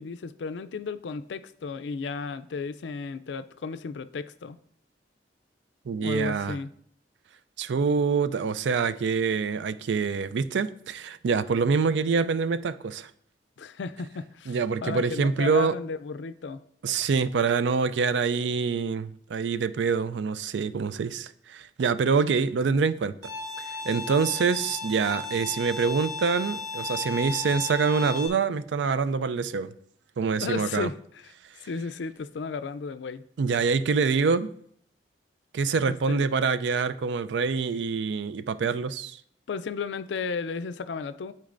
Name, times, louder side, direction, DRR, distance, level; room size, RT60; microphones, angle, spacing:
voice 1, 0.0-4.6 6.0-6.7 13.6-16.6 30.4-31.3 31.6-33.2 35.8-36.3 39.5-41.3, left 4 dB, 90° left, 0.4 m, -34 dB
voice 2, 5.9-6.6 7.6-13.1 14.5-15.7 16.8-23.2 23.7-29.7 30.2-30.9 33.4-34.5 35.5-39.2, right 5 dB, 90° right, 0.4 m, -25 dB
Bowed string instrument, 23.2-28.3, left 3 dB, 45° right, 2.3 m, -35 dB
11.5 x 4.5 x 2.5 m
head